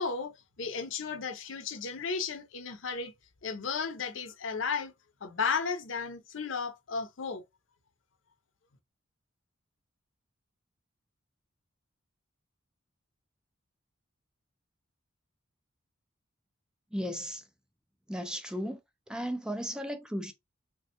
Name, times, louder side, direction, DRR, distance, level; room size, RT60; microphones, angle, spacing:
voice 1, 0.0-3.1 3.4-4.9 5.2-7.4, left 5 dB, 65° left, 0.6 m, -34 dB
voice 2, 16.9-17.5 18.1-18.8 19.1-20.3, equal, 5° right, 0.4 m, -35 dB
3.3 x 2.1 x 2.7 m
head